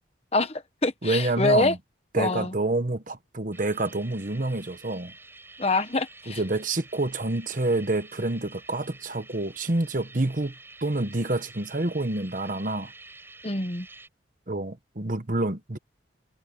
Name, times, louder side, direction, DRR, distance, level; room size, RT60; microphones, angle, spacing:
voice 1, 0.3-1.7 2.2-2.5 5.6-6.4 13.4-13.9, left 2 dB, 35° left, 1.3 m, -25 dB
voice 2, 1.0-1.8 2.1-5.1 6.3-10.5 10.8-12.9 14.5-15.8, right 2 dB, 45° right, 1.2 m, -28 dB
sound 1, 3.5-14.1, right 3 dB, 10° right, 7.0 m, -49 dB
head